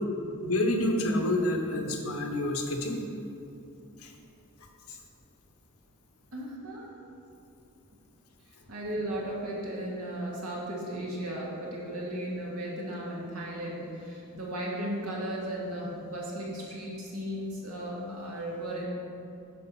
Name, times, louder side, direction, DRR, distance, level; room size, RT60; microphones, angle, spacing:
voice 1, 0.3-3.0 4.0-4.1, left 1 dB, 75° left, 3 dB, 1.0 m, -28 dB
voice 2, 6.3-6.9 8.7-18.9, right 1 dB, 90° right, -4 dB, 1.8 m, -35 dB
8.3 x 4.6 x 5.9 m, 2.7 s
head